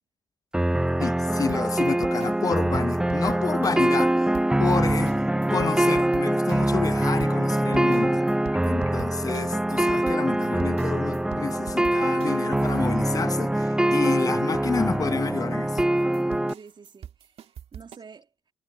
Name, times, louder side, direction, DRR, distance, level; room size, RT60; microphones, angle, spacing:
sound 1, 0.5-16.5, right 1 dB, 5° right, 0.7 m, -24 dB
voice 1, 1.0-4.1 4.6-5.1 5.5-8.2 8.6-15.8, left 5 dB, 30° left, 1.0 m, -29 dB
sound 2, 1.5-4.1 4.3-6.9 7.2-12.9 15.8-18.0, right 9 dB, 55° right, 2.3 m, -42 dB
voice 2, 8.1-8.4 16.4-18.3, right 5 dB, 40° right, 3.0 m, -49 dB
sound 3, 8.5-9.7, left 18 dB, 65° left, 7.6 m, -53 dB
figure-of-eight pair, 45°, 13 cm